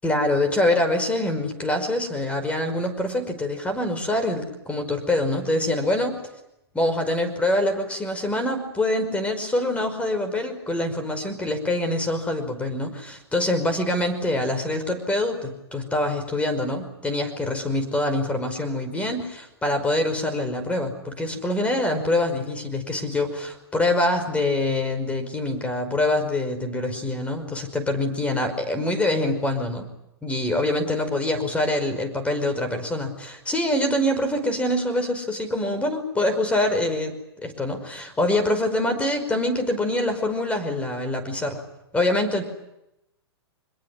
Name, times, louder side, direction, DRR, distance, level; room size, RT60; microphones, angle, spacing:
voice 1, 0.0-6.2 6.7-29.9 30.2-41.6 41.9-42.4, left 1 dB, 10° left, 7 dB, 5.4 m, -25 dB
24.5 x 22.0 x 9.7 m, 0.86 s
hypercardioid pair, 125°, 13 cm